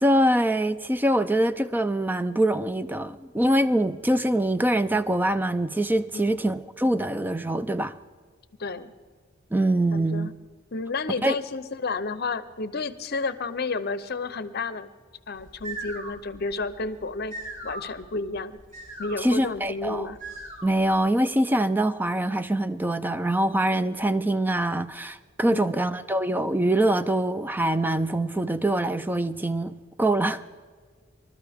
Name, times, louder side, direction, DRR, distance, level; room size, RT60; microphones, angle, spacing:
voice 1, 0.0-7.9 9.5-10.3 11.2-11.4 19.2-20.1 20.6-30.4, right 1 dB, 10° right, 0.4 m, -24 dB
voice 2, 8.6-8.9 9.9-10.3 10.7-14.9 15.3-17.3 17.6-18.6 19.0-20.2 25.5-25.8, left 3 dB, 55° left, 0.8 m, -31 dB
sound 1, 15.3-20.9, right 2 dB, 40° right, 4.3 m, -40 dB
25.0 x 13.0 x 3.6 m
head